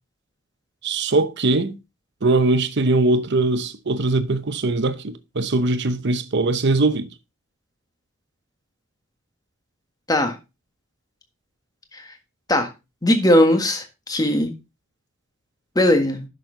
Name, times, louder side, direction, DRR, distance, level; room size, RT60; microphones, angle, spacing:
voice 1, 0.8-1.8 2.2-7.1, right 2 dB, 60° right, 0.8 m, -21 dB
voice 2, 13.0-14.5 15.7-16.3, left 1 dB, 20° left, 1.6 m, -18 dB
10.5 x 6.4 x 3.8 m
head